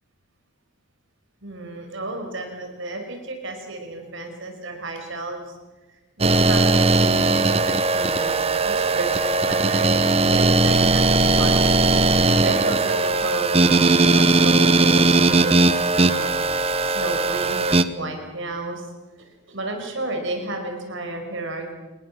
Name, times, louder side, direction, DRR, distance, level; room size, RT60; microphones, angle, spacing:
voice 1, 1.4-5.6 6.2-8.4 8.6-11.0 11.4-11.8 12.1-16.3 16.8-18.9 19.2-21.7, right 2 dB, 65° right, 3 dB, 5.4 m, -32 dB
sound 1, 6.2-17.8, right 3 dB, 30° right, 1.0 m, -18 dB
26.5 x 21.0 x 7.6 m, 1.2 s
head